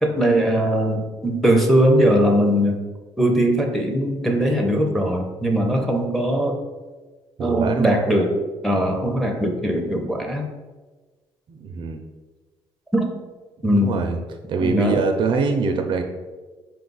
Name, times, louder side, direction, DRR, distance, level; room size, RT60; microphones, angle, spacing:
voice 1, 0.0-2.8 3.2-6.6 7.4-8.4 8.6-10.5 12.9-13.1 13.6-14.0 14.6-15.0, equal, ahead, 2 dB, 0.6 m, -20 dB
voice 2, 7.4-8.0 11.5-12.0 13.7-14.2 14.5-16.0, right 4 dB, 50° right, 5 dB, 0.4 m, -23 dB
4.6 x 2.3 x 3.9 m, 1.3 s
cardioid pair, 115°, 10 cm